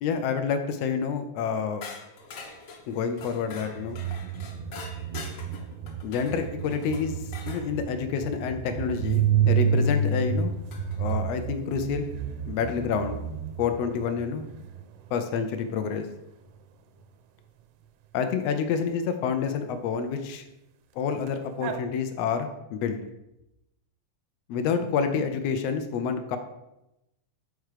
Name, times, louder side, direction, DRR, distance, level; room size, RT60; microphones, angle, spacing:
voice 1, 0.0-1.8 2.9-4.0 6.0-10.5 11.0-12.1 12.5-14.5 15.1-16.1 18.1-20.5 20.9-23.0 24.5-26.4, left 6 dB, 80° left, 7 dB, 1.4 m, -28 dB
sound 1, 1.8-7.7 9.6-9.7 10.7-11.2, left 4 dB, 60° left, 1.4 m, -44 dB
sound 2, 3.5-15.1 21.3-21.4 21.6-21.8, right 6 dB, 80° right, 1.9 m, -30 dB
6.1 x 4.7 x 6.5 m, 0.91 s
omnidirectional pair, 3.6 m